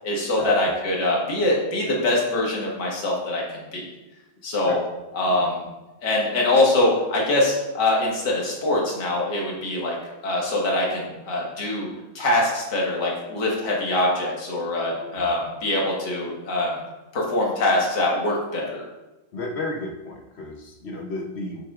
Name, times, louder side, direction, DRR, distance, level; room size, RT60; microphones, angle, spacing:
voice 1, 0.0-3.8 4.4-4.8 5.2-5.6 6.0-10.0 10.2-11.9 12.2-16.8 17.1-18.9, left 2 dB, 60° left, -3 dB, 2.1 m, -23 dB
voice 2, 14.9-15.3 19.3-21.6, left 2 dB, 85° left, 0 dB, 0.5 m, -33 dB
8.3 x 5.9 x 2.4 m, 1.0 s
omnidirectional pair, 2.2 m